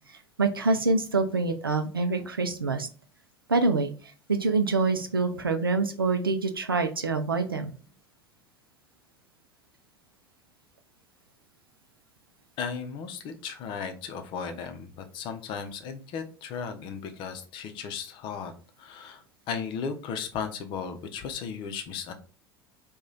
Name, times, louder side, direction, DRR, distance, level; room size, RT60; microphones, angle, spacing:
voice 1, 0.4-2.9 3.5-3.9 4.3-7.7, right 3 dB, 85° right, 6 dB, 0.4 m, -25 dB
voice 2, 12.6-18.5 18.8-19.2 19.5-22.1, left 6 dB, 45° left, 7 dB, 0.6 m, -35 dB
3.0 x 2.3 x 3.8 m, 0.38 s
figure-of-eight pair, 70°, 12 cm